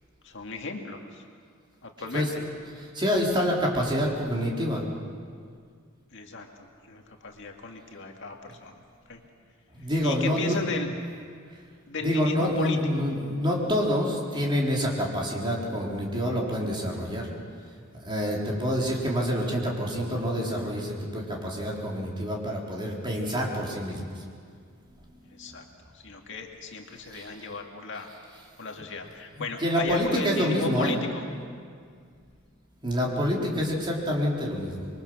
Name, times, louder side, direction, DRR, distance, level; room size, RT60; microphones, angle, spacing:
voice 1, 0.2-1.2 1.8-2.4 6.1-8.8 9.1-9.2 9.8-10.9 11.9-13.1 25.2-25.7 25.9-28.1 28.6-31.2, left 3 dB, 60° left, 2 dB, 2.0 m, -36 dB
voice 2, 2.8-4.9 9.7-10.6 12.0-17.3 18.0-24.2 25.3-25.7 27.0-27.4 29.4-31.0 32.8-34.9, equal, 25° right, -3 dB, 3.8 m, -27 dB
26.5 x 23.0 x 6.4 m, 2.1 s
head